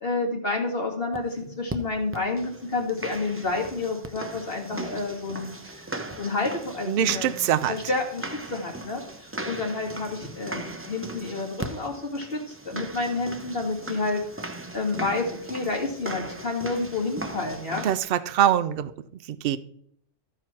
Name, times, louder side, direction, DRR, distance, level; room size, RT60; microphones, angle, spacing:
voice 1, 0.0-5.8 6.2-7.3 7.7-14.2 14.7-17.9, left 3 dB, 45° left, 2.3 m, -29 dB
sound 1, 1.1-1.2 1.7-1.8 2.1-18.0, right 2 dB, 15° right, 0.5 m, -38 dB
voice 2, 6.9-7.7 17.8-18.9 19.4-19.6, right 10 dB, 60° right, 0.7 m, -23 dB
13.5 x 4.8 x 5.8 m
omnidirectional pair, 1.4 m